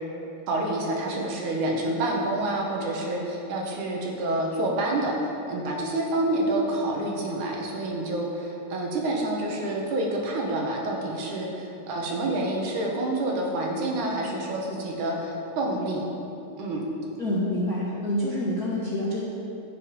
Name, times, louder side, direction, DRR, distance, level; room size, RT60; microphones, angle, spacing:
voice 1, 0.5-16.0 16.6-16.8, right 1 dB, 70° right, -1 dB, 2.7 m, -28 dB
voice 2, 17.2-19.2, left 1 dB, 60° left, -7 dB, 0.9 m, -27 dB
14.5 x 7.0 x 5.3 m, 2.9 s
omnidirectional pair, 3.9 m